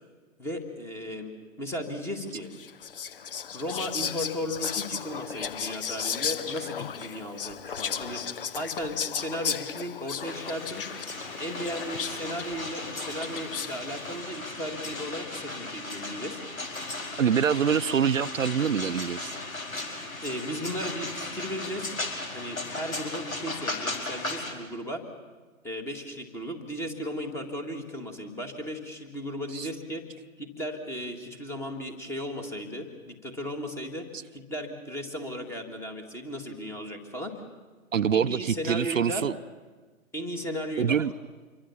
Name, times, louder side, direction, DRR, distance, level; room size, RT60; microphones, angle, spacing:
voice 1, 0.4-2.5 3.5-8.2 8.5-10.9 11.4-16.4 20.2-22.0 22.3-25.0 25.6-30.0 30.4-34.1 34.3-37.3 38.1-39.2 40.1-41.0, equal, 5° left, 6 dB, 1.8 m, -35 dB
Whispering, 2.5-13.9, left 7 dB, 40° left, 1.0 m, -35 dB
sound 1, 10.2-24.5, left 2 dB, 75° left, 5.1 m, -36 dB
voice 2, 17.2-19.4 29.5-29.7 37.9-39.3 40.8-41.1, right 7 dB, 70° right, 11 dB, 0.8 m, -25 dB
26.5 x 23.5 x 7.1 m, 1.4 s
figure-of-eight pair, 145°, 41 cm